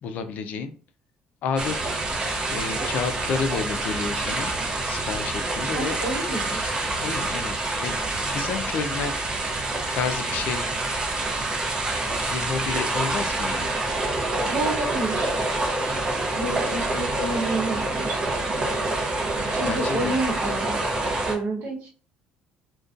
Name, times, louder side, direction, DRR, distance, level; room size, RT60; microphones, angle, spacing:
voice 1, 0.0-0.7 1.4-1.9 2.5-4.5 4.9-6.0 7.0-7.6 7.8-8.0 8.3-9.2 9.9-10.7 12.3-13.7 19.6-20.2, left 5 dB, 55° left, 9 dB, 0.4 m, -30 dB
sound 1, 1.6-21.3, right 2 dB, 25° right, 0.7 m, -27 dB
voice 2, 5.7-6.6 14.5-15.3 16.4-18.2 19.5-20.8 21.3-21.9, right 2 dB, 70° right, -1 dB, 1.0 m, -29 dB
2.5 x 2.2 x 2.4 m, 0.39 s
cardioid pair, 135°, 3 cm